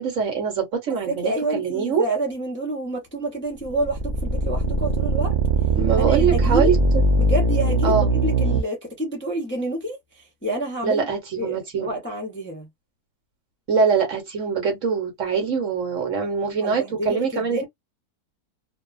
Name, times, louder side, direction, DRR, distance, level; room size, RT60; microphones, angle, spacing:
voice 1, 0.0-2.1 5.7-6.8 7.8-8.1 10.8-12.0 13.7-17.6, right 5 dB, 60° right, 1.3 m, -23 dB
voice 2, 0.9-5.3 6.0-6.7 7.2-11.1 11.4-12.7 16.6-17.6, right 1 dB, 10° left, 0.6 m, -28 dB
sound 1, 3.6-8.6, right 2 dB, 40° right, 0.6 m, -20 dB
2.6 x 2.3 x 2.4 m
omnidirectional pair, 1.6 m